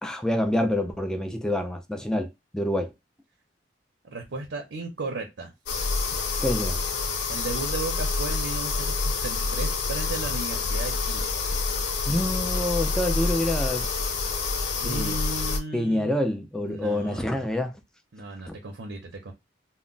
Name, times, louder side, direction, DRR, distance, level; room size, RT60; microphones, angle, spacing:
voice 1, 0.0-2.9 6.4-6.8 12.1-13.9 14.8-15.2 15.7-17.7 18.5-18.6, left 1 dB, 5° left, 0.3 m, -27 dB
voice 2, 4.0-5.5 7.3-11.3 14.8-16.3 16.6-17.5 18.1-19.3, right 3 dB, 85° right, 0.6 m, -35 dB
sound 1, 5.7-15.6, left 4 dB, 65° left, 0.5 m, -27 dB
2.1 x 2.1 x 3.7 m
head